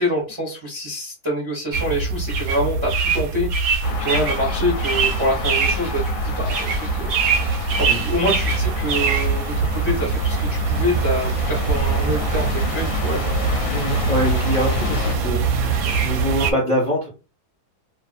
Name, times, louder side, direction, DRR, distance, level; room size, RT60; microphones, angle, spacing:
voice 1, 0.0-3.7 4.0-7.5 7.8-13.2, equal, 30° right, -3 dB, 0.5 m, -26 dB
sound 1, 1.7-16.5, right 5 dB, 70° right, 0.9 m, -23 dB
sound 2, 3.8-15.2, left 6 dB, 70° left, 0.8 m, -29 dB
voice 2, 13.7-17.1, equal, 30° left, -2 dB, 0.6 m, -24 dB
2.5 x 2.4 x 2.4 m, 0.31 s
omnidirectional pair, 1.7 m